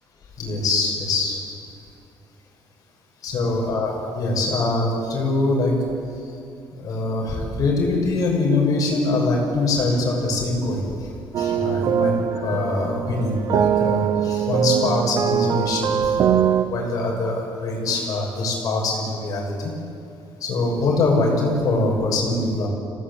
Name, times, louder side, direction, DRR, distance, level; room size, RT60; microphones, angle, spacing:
voice 1, 0.4-1.4 3.2-5.7 6.8-10.9 11.4-16.1 16.6-19.7 20.4-22.7, left 2 dB, 45° left, -1 dB, 6.8 m, -23 dB
sound 1, 11.3-16.7, right 8 dB, 45° right, 0.9 m, -22 dB
27.0 x 18.0 x 8.6 m, 2.7 s
cardioid pair, 175°, 9 cm